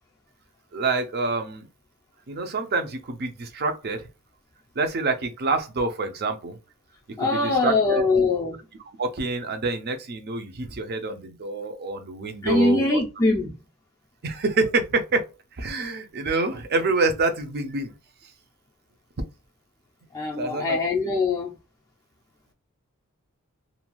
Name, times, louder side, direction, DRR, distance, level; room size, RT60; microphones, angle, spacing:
voice 1, 0.7-1.7 2.3-4.0 4.8-6.6 7.2-8.0 9.0-13.0 14.2-15.2 15.6-17.9 20.4-20.8 21.0-21.2, right 3 dB, 45° right, 0.5 m, -27 dB
voice 2, 7.2-8.6 12.4-13.6 20.1-21.5, left 3 dB, 15° left, 0.4 m, -22 dB
2.6 x 2.3 x 2.9 m
head